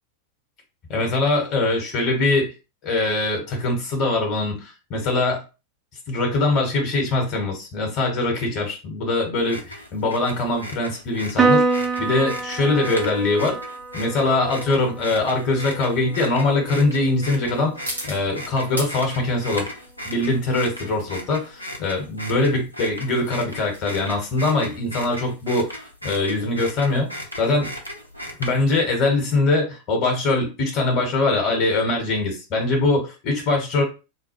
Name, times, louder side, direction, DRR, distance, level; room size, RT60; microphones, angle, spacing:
voice 1, 0.9-2.5 2.8-5.4 6.1-13.6 13.9-17.8 18.1-19.7 20.0-27.1 27.4-27.7 28.4-33.8, left 2 dB, 35° left, 2 dB, 1.1 m, -22 dB
sound 1, 9.4-28.8, equal, 90° left, 0.7 m, -37 dB
Piano, 11.4-18.1, right 4 dB, 15° right, 0.6 m, -27 dB
sound 2, 17.8-28.9, equal, 85° right, 1.4 m, -42 dB
3.8 x 2.2 x 2.9 m, 0.30 s
figure-of-eight pair, 90°, 0 cm